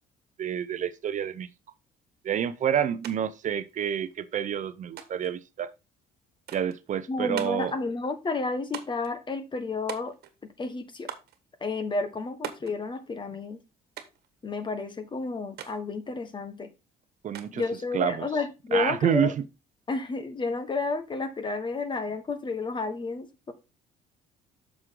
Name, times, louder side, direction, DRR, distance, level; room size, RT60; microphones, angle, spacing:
voice 1, 0.4-1.5 2.2-5.7 6.5-7.7 17.2-17.6 17.9-18.3 18.7-19.4, right 9 dB, 45° right, 0.7 m, -28 dB
sound 1, 3.0-3.2 3.4-4.2 5.0-5.4 6.5-6.8 7.4-7.7 8.7-9.1 9.9-10.4 11.1-11.4 12.4-12.8 14.0-14.3 15.6-15.8 17.3-17.7, right 10 dB, 70° right, 1.5 m, -40 dB
voice 2, 7.1-10.1 10.6-11.1 11.6-13.6 14.4-16.7 17.5-19.3 19.9-23.5, left 3 dB, 30° left, 1.4 m, -31 dB
7.9 x 6.3 x 3.8 m
cardioid pair, 110°, 17 cm